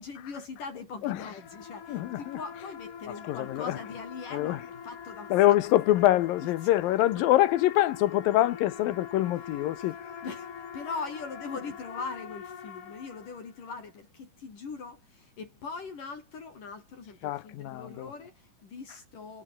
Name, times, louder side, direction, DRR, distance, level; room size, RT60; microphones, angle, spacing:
voice 1, 0.0-5.8 6.4-6.7 10.2-19.4, left 4 dB, 65° left, 6.2 m, -41 dB
sound 1, 1.0-13.7, left 7 dB, 45° left, 2.7 m, -44 dB
voice 2, 1.9-2.4 3.2-3.8 4.3-4.6 5.3-10.0 17.2-18.1, left 14 dB, 85° left, 2.8 m, -25 dB
omnidirectional pair, 4.0 m